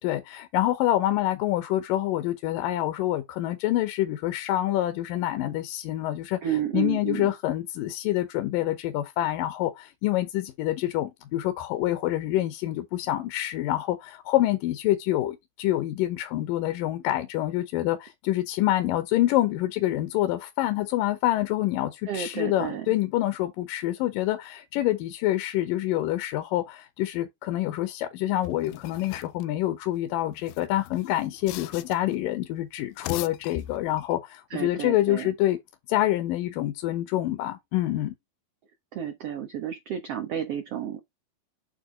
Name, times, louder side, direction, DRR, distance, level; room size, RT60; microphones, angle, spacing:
voice 1, 0.0-35.6 35.9-38.1, left 14 dB, 75° left, 2.4 m, -27 dB
voice 2, 6.4-7.3 22.1-22.9 34.5-35.3 38.9-41.0, right 9 dB, 80° right, 1.3 m, -31 dB
sound 1, 28.4-29.4 30.3-32.2 32.8-34.1, left 14 dB, 90° left, 2.5 m, -39 dB
8.9 x 3.6 x 4.9 m
omnidirectional pair, 4.3 m